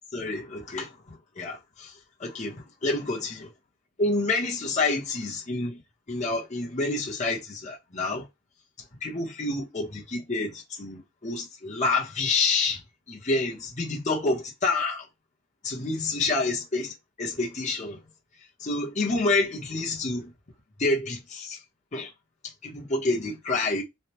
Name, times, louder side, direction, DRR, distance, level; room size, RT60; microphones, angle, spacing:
voice 1, 0.1-1.9 2.2-3.5 4.0-5.8 6.1-8.3 9.0-12.8 13.1-15.1 15.6-18.0 18.6-20.3 20.8-21.6 21.9-22.1 22.6-23.8, left 3 dB, 35° left, 0.9 m, -28 dB
3.3 x 2.3 x 2.9 m
head